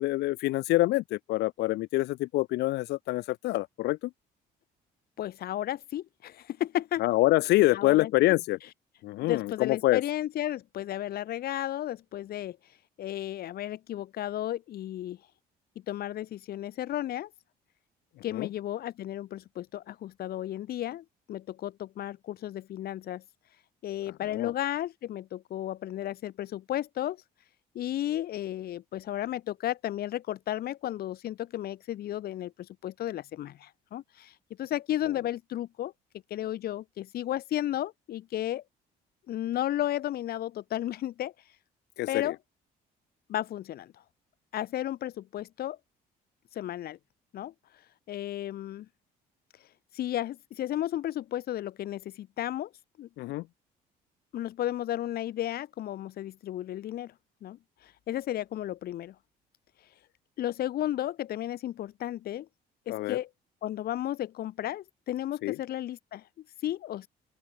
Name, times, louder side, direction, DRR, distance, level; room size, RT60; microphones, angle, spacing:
voice 1, 0.0-4.0 7.0-8.6 9.0-10.0 18.3-18.5 24.3-24.5 42.0-42.3 53.2-53.4 62.9-63.2 65.4-65.6, left 18 dB, 85° left, 3.7 m, -26 dB
voice 2, 5.2-7.0 7.7-8.4 9.2-12.6 13.0-15.2 15.9-17.3 18.2-23.2 23.8-27.2 27.7-35.9 36.3-38.6 39.3-41.3 42.1-42.4 43.3-43.9 44.5-45.8 46.5-47.0 47.3-47.5 48.1-48.9 49.9-52.7 53.0-53.1 54.3-57.1 57.4-59.2 60.4-62.5 62.9-63.3 63.6-66.2 66.6-67.1, left 12 dB, 65° left, 5.7 m, -33 dB
open air
cardioid pair, 110°, 17 cm